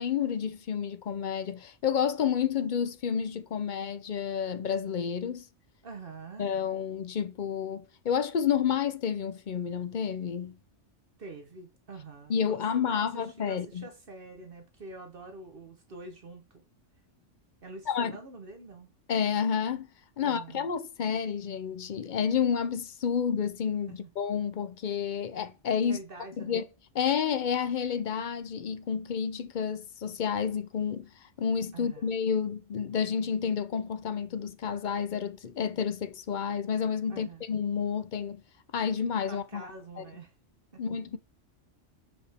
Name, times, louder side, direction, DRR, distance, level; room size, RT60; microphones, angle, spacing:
voice 1, 0.0-5.5 6.4-10.6 12.3-13.9 17.9-18.2 19.1-19.9 20.2-26.0 26.4-26.7 26.9-38.4 38.7-39.7 40.0-40.1 40.8-41.2, left 7 dB, 50° left, 0.6 m, -30 dB
voice 2, 5.8-6.5 11.2-16.6 17.6-18.9 20.2-20.7 23.9-24.0 25.8-26.6 31.7-32.1 37.1-37.5 39.3-40.3 40.7-40.8, right 3 dB, 50° right, 1.1 m, -46 dB
7.0 x 5.0 x 3.4 m
omnidirectional pair, 1.3 m